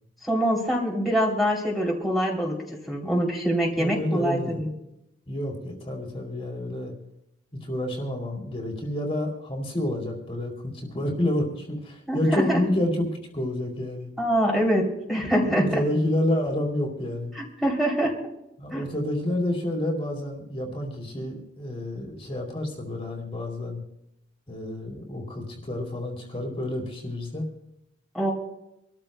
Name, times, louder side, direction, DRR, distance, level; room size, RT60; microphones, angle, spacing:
voice 1, 0.2-2.6 2.9-4.7 12.1-12.6 14.2-15.8 17.3-18.1 18.7-18.9 28.1-28.3, equal, ahead, -3 dB, 2.9 m, -24 dB
voice 2, 3.8-4.6 5.3-6.9 7.5-14.1 15.5-17.3 18.6-23.8 24.5-27.5, left 1 dB, 30° left, 0 dB, 2.8 m, -29 dB
27.0 x 13.5 x 2.2 m, 0.85 s
head